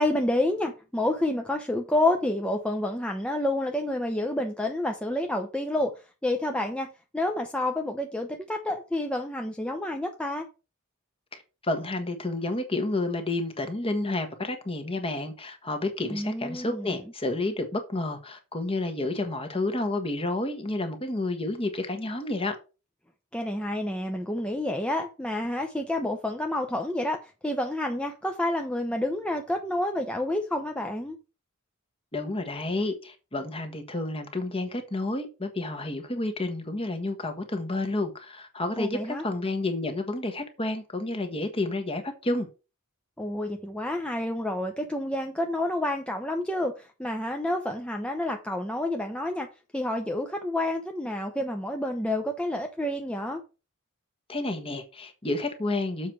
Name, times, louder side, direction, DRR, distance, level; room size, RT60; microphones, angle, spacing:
voice 1, 0.0-5.9 6.2-10.5 16.1-17.0 23.3-27.2 27.4-31.2 38.8-39.2 43.2-49.5 49.7-53.4, left 1 dB, 5° left, 0.8 m, -29 dB
voice 2, 11.3-22.5 32.1-42.5 54.3-56.1, left 2 dB, 25° left, 1.4 m, -30 dB
7.2 x 4.6 x 6.1 m
head